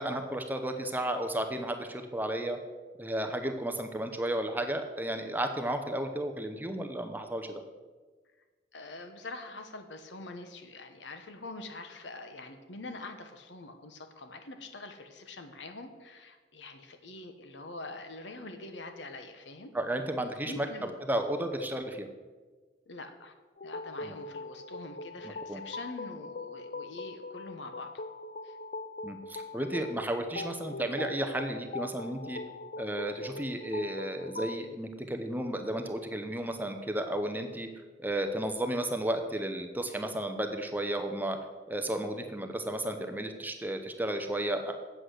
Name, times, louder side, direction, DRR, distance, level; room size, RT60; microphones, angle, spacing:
voice 1, 0.0-2.6 3.0-7.6 19.7-20.7 21.1-22.1 24.0-24.1 25.5-25.6 29.0-32.4 32.8-37.7 38.0-41.4 41.7-44.7, right 1 dB, 10° right, 6 dB, 0.7 m, -33 dB
voice 2, 8.7-19.7 20.4-21.0 22.9-23.3 23.6-27.9 28.4-28.6, left 2 dB, 80° left, 7 dB, 1.2 m, -44 dB
sound 1, 23.6-34.6, left 3 dB, 50° left, 0.5 m, -41 dB
8.1 x 8.0 x 6.5 m, 1.4 s
head